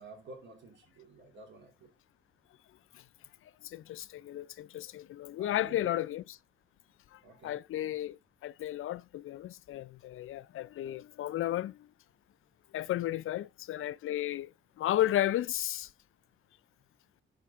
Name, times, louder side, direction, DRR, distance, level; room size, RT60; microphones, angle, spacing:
voice 1, 0.0-1.9 5.4-5.9 7.2-7.6 12.9-13.2, right 3 dB, 60° right, 2.9 m, -51 dB
voice 2, 3.6-6.2 7.1-11.9 12.7-15.9, left 13 dB, 85° left, 0.4 m, -34 dB
10.0 x 5.2 x 3.6 m
wide cardioid pair, 150°, 21 cm